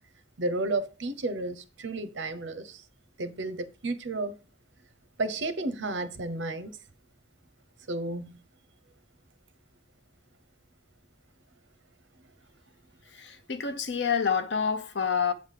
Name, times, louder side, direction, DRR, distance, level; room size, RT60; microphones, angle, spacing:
voice 1, 0.4-2.8 3.2-4.4 5.2-6.7 7.9-8.4, right 2 dB, 75° right, 0.8 m, -32 dB
voice 2, 13.1-15.3, left 6 dB, 65° left, 0.8 m, -28 dB
8.0 x 3.5 x 6.5 m
head